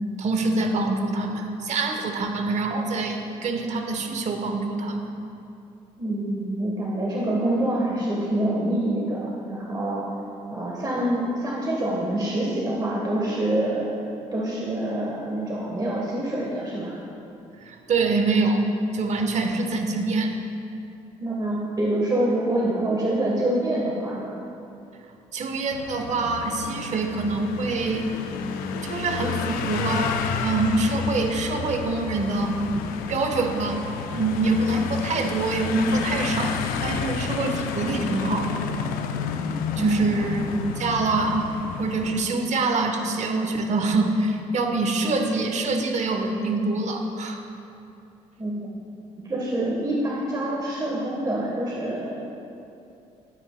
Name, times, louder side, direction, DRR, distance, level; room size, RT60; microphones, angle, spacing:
voice 1, 0.2-5.0 17.6-18.6 18.9-20.4 25.3-28.1 28.8-33.8 34.1-38.7 39.8-40.4 40.8-41.5 41.8-47.4, right 3 dB, 55° right, 5 dB, 1.0 m, -25 dB
voice 2, 6.0-10.1 10.5-13.9 14.3-17.0 21.2-24.3 39.7-40.3 48.4-48.8 49.2-52.2, right 1 dB, 25° right, -3 dB, 1.3 m, -26 dB
sound 1, 25.7-42.2, left 6 dB, 85° left, 0.5 m, -31 dB
11.5 x 9.7 x 2.2 m, 2.7 s
supercardioid pair, 80°, 14 cm